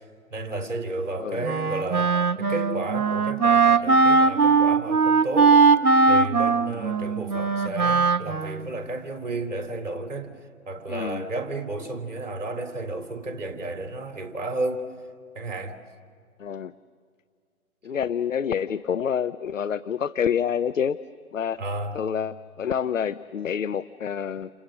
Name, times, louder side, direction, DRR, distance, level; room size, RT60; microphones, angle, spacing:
voice 1, 0.3-5.6 6.1-10.3 10.6-14.9 15.3-15.8 21.6-22.0, right 2 dB, 55° right, 5 dB, 3.4 m, -32 dB
Wind instrument woodwind instrument, 1.4-8.7, right 4 dB, 90° right, 1.0 m, -20 dB
voice 2, 10.9-11.3 16.4-16.7 17.8-21.0 21.3-21.6 21.9-24.5, left 8 dB, 60° left, 15 dB, 0.6 m, -27 dB
29.0 x 28.5 x 6.3 m, 2.1 s
figure-of-eight pair, 140°, 44 cm